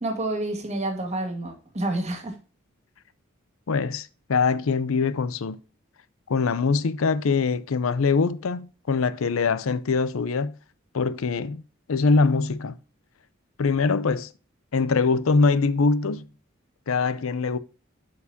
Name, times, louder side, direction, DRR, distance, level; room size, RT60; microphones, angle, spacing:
voice 1, 0.0-2.4, right 2 dB, 35° right, 2.0 m, -29 dB
voice 2, 3.7-5.6 6.3-10.5 10.9-11.6 11.9-12.8 13.6-14.3 14.7-16.2 16.9-17.6, left 4 dB, 80° left, 0.5 m, -23 dB
12.5 x 4.7 x 2.7 m
head